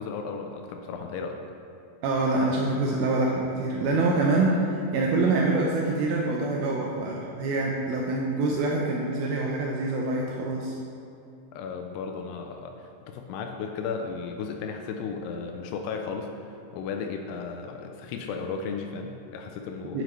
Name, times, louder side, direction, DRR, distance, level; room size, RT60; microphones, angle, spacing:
voice 1, 0.0-1.4 11.5-20.0, left 5 dB, 80° left, 4 dB, 2.5 m, -35 dB
voice 2, 2.0-10.8 19.9-20.0, right 2 dB, 80° right, -2 dB, 2.2 m, -25 dB
9.7 x 7.8 x 3.1 m, 2.6 s
omnidirectional pair, 5.0 m